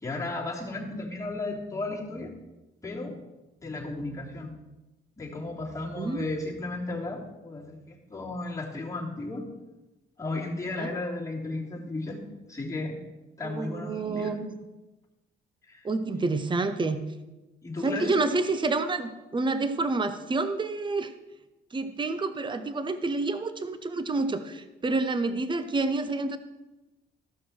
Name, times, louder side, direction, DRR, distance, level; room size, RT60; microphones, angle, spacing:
voice 1, 0.0-2.3 2.8-3.2 3.6-4.5 5.2-9.5 10.2-12.2 12.5-13.0 13.4-14.3 15.6-15.9 17.6-18.1, left 2 dB, 15° left, -4 dB, 3.1 m, -34 dB
voice 2, 6.0-6.4 10.8-11.0 13.4-14.6 15.8-17.0 17.8-21.1 21.7-26.4, right 3 dB, 25° right, 10 dB, 0.8 m, -28 dB
14.5 x 5.9 x 4.6 m, 1.1 s
cardioid pair, 90°, 20 cm